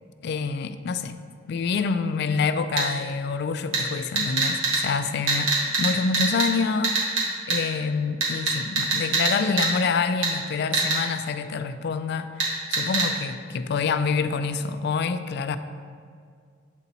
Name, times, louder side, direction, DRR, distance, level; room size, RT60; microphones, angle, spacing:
voice 1, 0.2-7.0 7.5-15.6, left 5 dB, 60° left, 10 dB, 0.3 m, -27 dB
sound 1, 2.8-2.9 3.7-3.8 4.2-4.8 5.3-5.9 6.1-6.5 6.8-7.2 7.5-7.6 8.2-9.3 9.6-9.7 10.2-10.3 10.7-11.0 12.4-12.5 12.7-13.1, right 4 dB, 85° right, 1.7 m, -22 dB
8.1 x 4.0 x 4.2 m, 2.1 s
head